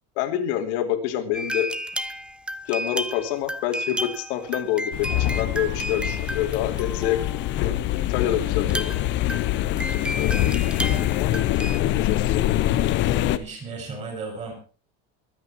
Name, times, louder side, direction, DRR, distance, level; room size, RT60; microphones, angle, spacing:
voice 1, 0.2-1.7 2.7-7.2 7.6-7.8 8.1-8.9 10.1-10.5 11.1-11.3 12.0-12.4, left 11 dB, 90° left, 6 dB, 3.0 m, -27 dB
sound 1, 1.3-7.6 8.6-11.8, equal, 5° right, 0.6 m, -32 dB
sound 2, 4.9-13.4, left 14 dB, 35° left, 0.8 m, -24 dB
voice 2, 13.2-14.5, right 4 dB, 20° right, 2 dB, 6.5 m, -36 dB
23.5 x 9.0 x 4.4 m, 0.39 s
cardioid pair, 180°, 32 cm